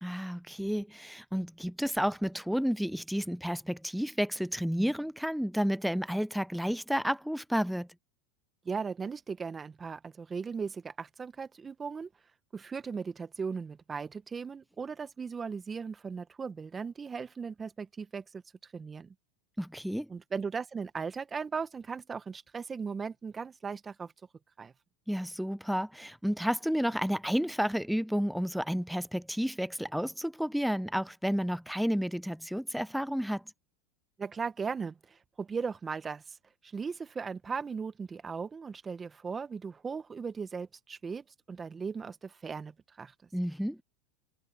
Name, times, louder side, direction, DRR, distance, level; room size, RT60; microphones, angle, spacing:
voice 1, 0.0-7.9 19.6-20.1 25.1-33.4 43.3-43.8, equal, ahead, 0.6 m, -31 dB
voice 2, 8.6-12.1 12.5-18.2 18.6-19.1 20.1-24.1 24.6-24.7 34.2-36.4 36.6-43.1, right 5 dB, 20° right, 1.3 m, -37 dB
hypercardioid pair, 110°, 0 cm